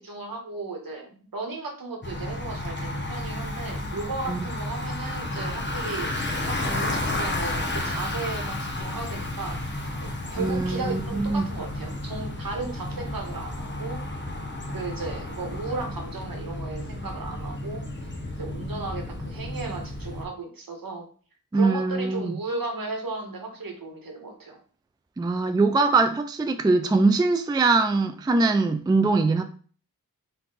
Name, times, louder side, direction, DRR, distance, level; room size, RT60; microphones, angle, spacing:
voice 1, 0.0-6.1 6.5-9.6 10.0-14.0 14.7-18.1 18.4-21.1 21.5-24.6, right 3 dB, 60° right, 2 dB, 1.4 m, -35 dB
Bicycle, 2.0-20.2, left 1 dB, 30° left, 1.0 m, -32 dB
voice 2, 10.4-11.4 21.5-22.4 25.2-29.4, right 3 dB, 10° right, 9 dB, 0.4 m, -22 dB
4.4 x 2.6 x 4.0 m, 0.42 s
cardioid pair, 40°, 38 cm